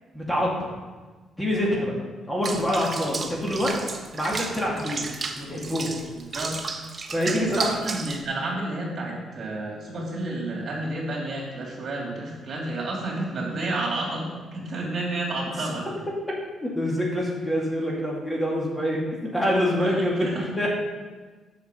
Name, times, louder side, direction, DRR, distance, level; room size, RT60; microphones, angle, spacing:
voice 1, 0.1-0.7 1.4-1.9 2.3-3.8 4.1-5.1 5.4-6.0 7.1-7.7 16.6-20.7, equal, 10° left, -3 dB, 2.1 m, -26 dB
Water / Bathtub (filling or washing), 2.4-8.2, right 4 dB, 35° right, 0.9 m, -33 dB
voice 2, 6.1-6.6 7.3-15.9 19.8-20.4, right 2 dB, 50° right, -3 dB, 3.0 m, -31 dB
7.2 x 6.7 x 5.3 m, 1.3 s
cardioid pair, 90°, 0 cm